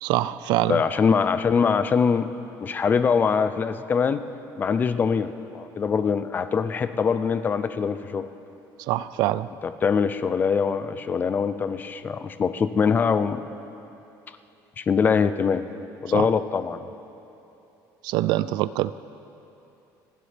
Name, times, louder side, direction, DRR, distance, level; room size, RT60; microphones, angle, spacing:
voice 1, 0.0-0.8 8.8-9.5 16.1-16.3 18.0-18.9, right 15 dB, 70° right, 16 dB, 0.4 m, -24 dB
voice 2, 0.7-2.3 2.6-4.2 4.6-8.3 9.6-13.4 14.8-15.6 16.0-16.9, left 6 dB, 25° left, 11 dB, 0.4 m, -23 dB
27.0 x 11.0 x 3.4 m, 2.9 s
cardioid pair, 165°, 8 cm